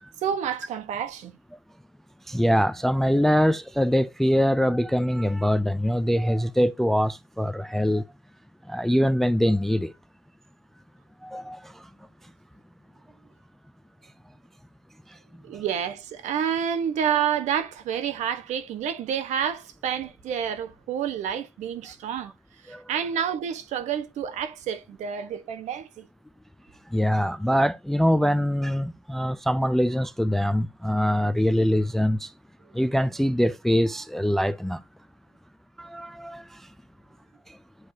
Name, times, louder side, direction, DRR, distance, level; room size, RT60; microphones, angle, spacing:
voice 1, 0.2-1.4 15.4-22.3 22.6-26.1, right 8 dB, 55° right, 1.2 m, -29 dB
voice 2, 2.3-8.0 8.7-9.9 11.2-11.9 15.1-15.2 22.7-22.8 26.9-32.3 32.7-34.8 35.8-36.7 37.5-37.6, equal, ahead, 0.3 m, -23 dB
11.0 x 4.8 x 2.8 m
cardioid pair, 130°, 14 cm